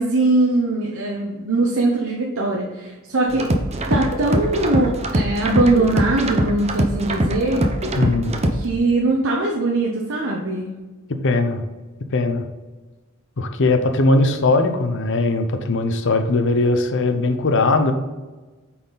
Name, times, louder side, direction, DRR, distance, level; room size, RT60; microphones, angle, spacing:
voice 1, 0.0-3.5 3.9-7.7 8.6-10.7, right 2 dB, 60° right, -1 dB, 0.9 m, -21 dB
sound 1, 3.3-8.6, right 1 dB, 30° right, 0.7 m, -22 dB
voice 2, 7.9-8.4 11.2-11.6 12.1-12.4 13.4-17.9, left 2 dB, 60° left, 7 dB, 0.7 m, -19 dB
9.0 x 4.4 x 3.9 m, 1.2 s
head